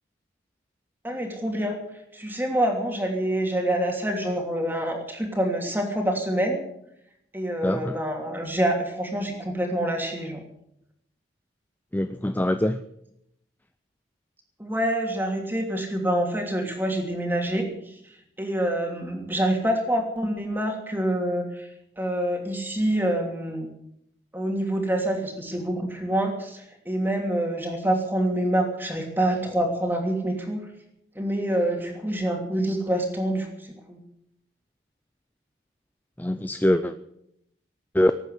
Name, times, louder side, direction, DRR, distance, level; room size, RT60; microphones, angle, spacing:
voice 1, 1.0-1.8 2.1-6.6 7.3-10.4 14.6-18.0 18.4-21.7 22.0-23.7 24.3-30.6 31.1-34.0, right 1 dB, 10° right, 2 dB, 2.9 m, -26 dB
voice 2, 7.6-8.0 11.9-12.8 36.2-36.9 37.9-38.1, left 1 dB, 10° left, 10 dB, 0.5 m, -23 dB
18.0 x 9.2 x 8.2 m, 0.77 s
head